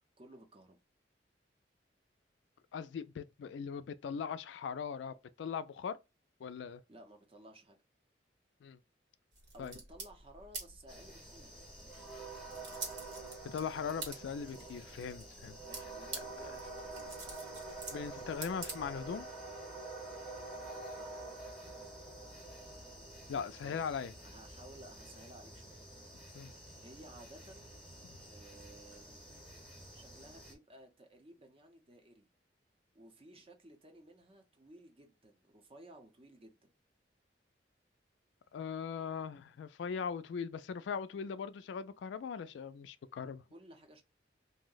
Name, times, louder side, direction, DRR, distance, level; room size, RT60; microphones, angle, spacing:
voice 1, 0.2-0.8 6.9-7.8 9.5-11.5 15.6-17.4 20.9-21.1 23.6-23.9 24.2-25.8 26.8-27.7 28.3-29.3 29.9-32.3 32.9-36.7 43.5-44.0, right 1 dB, 30° right, 0.6 m, -56 dB
voice 2, 2.7-6.0 6.4-6.8 8.6-8.8 9.6-9.7 13.4-15.6 17.9-19.3 23.3-24.1 26.3-26.5 38.5-43.4, left 6 dB, 80° left, 0.3 m, -40 dB
sound 1, 9.3-19.3, right 3 dB, 80° right, 1.2 m, -48 dB
sound 2, 10.9-30.5, right 2 dB, ahead, 0.9 m, -48 dB
2.7 x 2.1 x 3.8 m
head